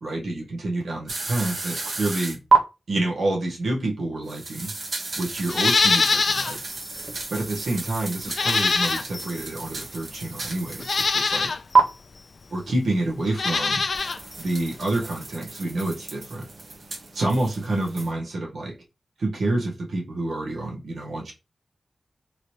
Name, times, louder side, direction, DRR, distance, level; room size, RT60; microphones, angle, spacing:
voice 1, 0.0-2.4 2.9-4.7 5.2-6.6 7.3-11.5 12.5-13.9 14.4-16.5 17.1-18.7 19.2-21.3, right 2 dB, 85° right, -2 dB, 1.5 m, -28 dB
sound 1, 1.1-2.6 4.3-11.5 11.7-11.8 13.9-18.1, right 5 dB, 60° right, 1.0 m, -29 dB
Livestock farm animals working animals, 5.5-6.6 7.0-7.1 8.3-9.3 10.2-10.3 10.8-11.6 13.3-14.2 14.5-14.6, left 4 dB, 60° left, 0.3 m, -23 dB
3.9 x 3.2 x 2.7 m, 0.26 s
wide cardioid pair, 100°, 0 cm